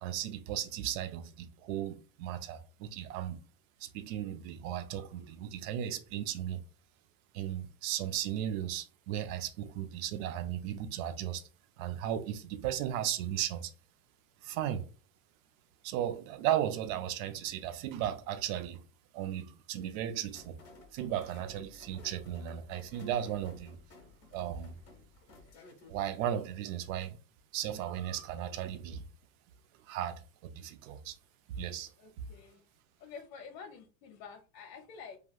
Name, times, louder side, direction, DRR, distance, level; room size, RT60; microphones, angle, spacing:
voice 1, 0.0-3.4 3.8-6.6 7.3-11.4 11.8-13.7 14.4-14.9 15.8-18.8 19.1-20.6 20.9-23.8 24.3-24.8 25.9-27.2 27.5-29.0 29.8-31.2 31.6-31.9, right 11 dB, 55° right, 0.6 m, -36 dB
sound 1, 20.3-25.9, left 3 dB, 30° left, 1.1 m, -55 dB
voice 2, 32.0-32.6 33.0-35.2, left 6 dB, 70° left, 0.8 m, -49 dB
3.3 x 2.3 x 2.3 m
supercardioid pair, 130°, 49 cm